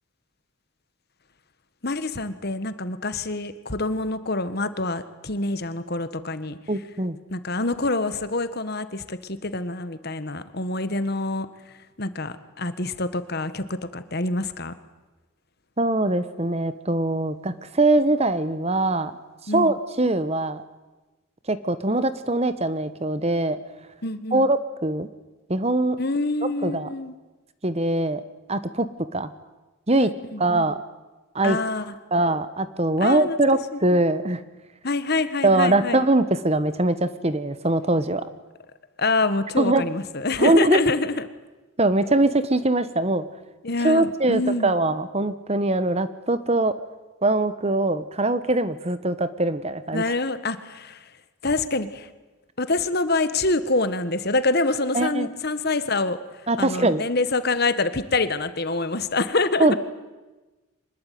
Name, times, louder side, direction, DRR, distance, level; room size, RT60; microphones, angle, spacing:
voice 1, 1.8-6.6 7.3-14.7 19.5-19.7 24.0-24.5 26.0-27.1 30.0-30.7 31.4-31.9 33.0-33.4 33.7-33.8 34.8-36.1 39.0-41.3 43.6-44.8 49.9-51.1 51.4-52.1 52.6-59.8, left 2 dB, 50° left, 12 dB, 1.5 m, -26 dB
voice 2, 6.7-7.2 15.8-19.1 19.5-20.6 21.5-23.6 24.3-25.1 25.5-26.0 26.6-26.9 27.6-28.2 28.5-28.9 29.1-29.3 29.9-30.1 30.4-30.8 31.3-31.6 32.1-34.4 35.4-38.2 39.6-39.8 40.4-40.8 41.8-43.2 43.8-46.7 47.2-50.0 54.9-55.3 56.5-57.0 59.6-59.7, right 2 dB, 30° right, 13 dB, 1.2 m, -22 dB
25.0 x 20.5 x 9.4 m, 1.2 s
head